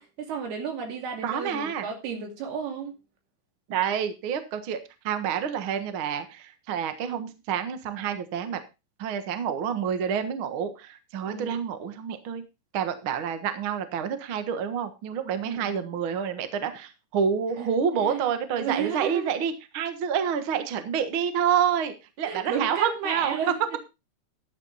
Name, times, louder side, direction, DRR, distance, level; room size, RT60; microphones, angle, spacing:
voice 1, 0.0-3.0 11.3-11.6 15.4-15.7 17.6-17.7 18.0-19.3 22.2-23.8, right 6 dB, 85° right, 3 dB, 4.6 m, -33 dB
voice 2, 1.2-1.9 3.7-4.8 5.0-8.6 9.0-12.4 12.7-23.4, right 7 dB, 65° right, 9 dB, 1.3 m, -28 dB
12.5 x 8.7 x 4.1 m, 0.27 s
omnidirectional pair, 4.4 m